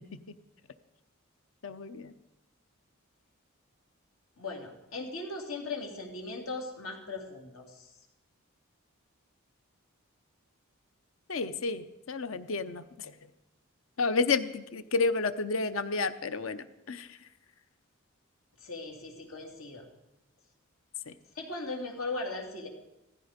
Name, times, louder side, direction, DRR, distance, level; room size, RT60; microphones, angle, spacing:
voice 1, 1.6-2.1 11.3-13.1 14.0-17.2 21.1-21.2, left 4 dB, 70° left, 12 dB, 0.8 m, -31 dB
voice 2, 4.4-7.9 18.6-19.9 21.3-22.7, left 3 dB, 90° left, 1 dB, 3.2 m, -38 dB
17.0 x 14.5 x 5.2 m, 0.95 s
head